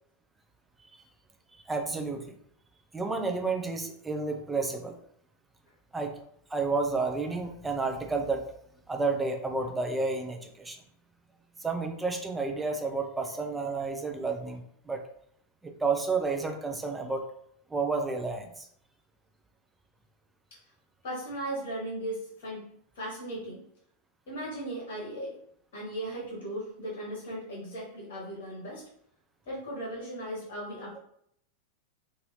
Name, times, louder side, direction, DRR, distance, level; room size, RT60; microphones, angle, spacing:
voice 1, 1.7-2.3 2.9-5.0 5.9-6.2 6.5-8.5 8.9-10.8 11.6-15.0 15.6-17.3 17.7-18.7, right 3 dB, 10° right, 4 dB, 0.5 m, -31 dB
voice 2, 21.0-23.6 24.3-25.4 25.7-28.9 29.4-31.0, right 1 dB, 55° left, -4 dB, 1.0 m, -37 dB
2.7 x 2.6 x 3.0 m, 0.68 s
figure-of-eight pair, 90°, 0 cm